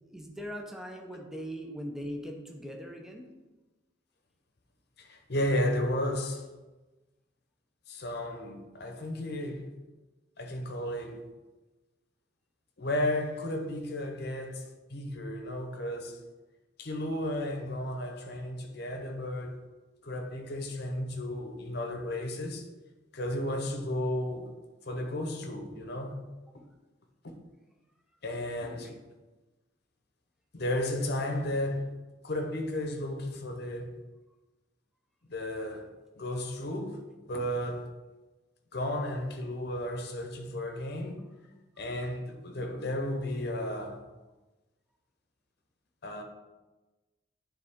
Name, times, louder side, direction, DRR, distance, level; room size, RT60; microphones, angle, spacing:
voice 1, 0.1-3.3 28.6-29.0 41.8-41.9, equal, ahead, 0.6 m, -40 dB
voice 2, 5.0-6.4 7.9-9.7 10.4-11.2 12.8-16.2 16.8-19.6 20.0-22.7 23.1-24.5 24.8-26.2 26.5-26.6 27.2-27.3 28.2-28.9 30.5-31.9 32.2-34.0 35.3-35.9 36.2-37.0 37.3-37.9 38.7-41.2 41.8-44.0 46.0-46.2, left 1 dB, 55° left, 0.9 m, -33 dB
9.5 x 3.8 x 3.6 m
head